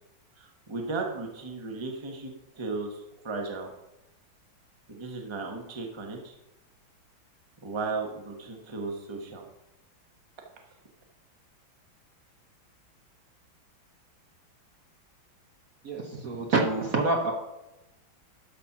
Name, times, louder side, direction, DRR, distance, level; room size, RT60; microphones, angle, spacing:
voice 1, 0.4-3.7 4.9-6.3 7.6-9.4, right 3 dB, 20° right, 1 dB, 0.9 m, -35 dB
voice 2, 15.8-17.3, right 3 dB, 55° right, 1 dB, 1.1 m, -26 dB
12.0 x 4.3 x 5.9 m, 0.95 s
omnidirectional pair, 2.2 m